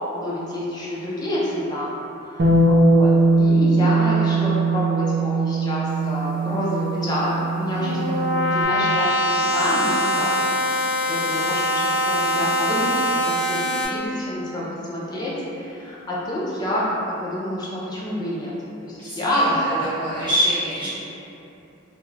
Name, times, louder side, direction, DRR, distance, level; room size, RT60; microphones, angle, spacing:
voice 1, 0.1-2.0 2.4-10.4 11.0-18.5 18.8-20.2, equal, 20° left, -7 dB, 0.4 m, -28 dB
Bass guitar, 2.4-8.6, right 2 dB, 55° right, 0.4 m, -20 dB
sound 1, 7.4-13.9, left 1 dB, 60° left, 0.7 m, -23 dB
voice 2, 19.0-20.9, equal, 25° right, -13 dB, 0.9 m, -25 dB
2.3 x 2.0 x 3.1 m, 2.8 s
head